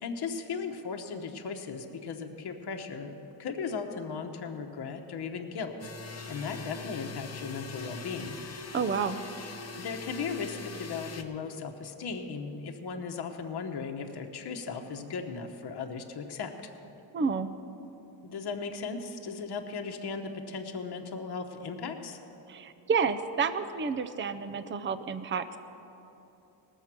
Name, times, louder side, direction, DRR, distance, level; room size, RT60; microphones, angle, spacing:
voice 1, 0.0-8.4 9.7-16.5 18.2-22.2, left 5 dB, 60° left, 4 dB, 1.0 m, -37 dB
sound 1, 5.8-11.2, left 3 dB, 35° left, 0.8 m, -42 dB
voice 2, 8.7-9.2 17.1-17.5 22.5-25.6, right 5 dB, 25° right, 11 dB, 0.5 m, -30 dB
19.0 x 7.3 x 6.0 m, 3.0 s
wide cardioid pair, 110°, 44 cm